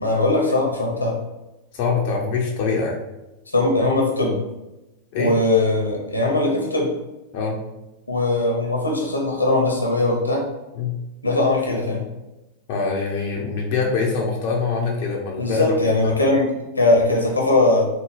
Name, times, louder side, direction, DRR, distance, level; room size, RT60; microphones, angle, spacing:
voice 1, 0.0-1.2 3.5-4.4 5.2-6.9 8.1-10.5 11.2-12.0 15.4-16.5 16.8-17.9, left 2 dB, 80° left, -1 dB, 0.7 m, -20 dB
voice 2, 1.7-3.0 5.1-5.3 7.3-7.6 10.7-10.9 12.7-16.0, left 4 dB, 45° left, -1 dB, 0.5 m, -24 dB
3.5 x 2.2 x 3.2 m, 1.0 s
figure-of-eight pair, 90°, 0 cm